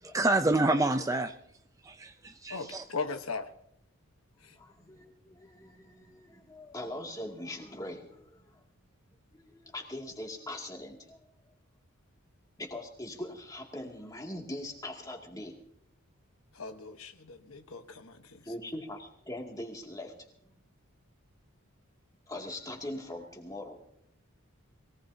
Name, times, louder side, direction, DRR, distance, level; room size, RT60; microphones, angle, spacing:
voice 1, 0.0-1.3 1.9-2.8, right 2 dB, 15° right, 8 dB, 0.5 m, -27 dB
voice 2, 2.5-3.5 16.5-18.4, left 4 dB, 80° left, 7 dB, 1.1 m, -38 dB
voice 3, 4.5-8.6 9.3-11.3 12.6-15.6 18.4-20.3 22.3-23.8, left 1 dB, 15° left, 1 dB, 2.4 m, -41 dB
22.5 x 18.0 x 2.8 m, 0.69 s
head